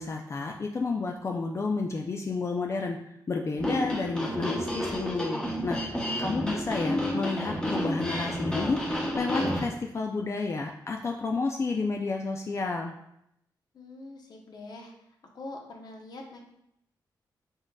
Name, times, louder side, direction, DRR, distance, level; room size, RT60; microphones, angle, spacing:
voice 1, 0.0-3.0 3.3-12.9, left 3 dB, 35° left, 1 dB, 0.3 m, -31 dB
sound 1, 3.6-9.7, equal, 10° left, 0.9 m, -30 dB
voice 2, 6.2-6.6 13.7-14.9 15.3-16.4, left 2 dB, 60° left, 1 dB, 0.9 m, -44 dB
4.6 x 4.3 x 2.2 m, 0.77 s
cardioid pair, 90°, 8 cm